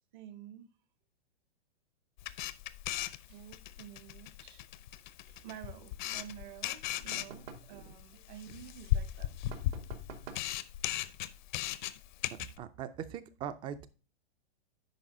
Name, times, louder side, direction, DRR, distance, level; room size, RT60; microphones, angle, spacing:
voice 1, 0.1-0.7 3.3-4.7 5.3-9.4, right 11 dB, 50° right, 1.0 m, -50 dB
Camera, 2.2-12.6, left 13 dB, 50° left, 0.6 m, -37 dB
sound 1, 7.1-7.8 9.5-10.6, right 6 dB, 70° right, 1.7 m, -48 dB
voice 2, 12.6-13.9, right 9 dB, 15° right, 0.4 m, -40 dB
10.5 x 4.0 x 3.7 m
hypercardioid pair, 135°, 30 cm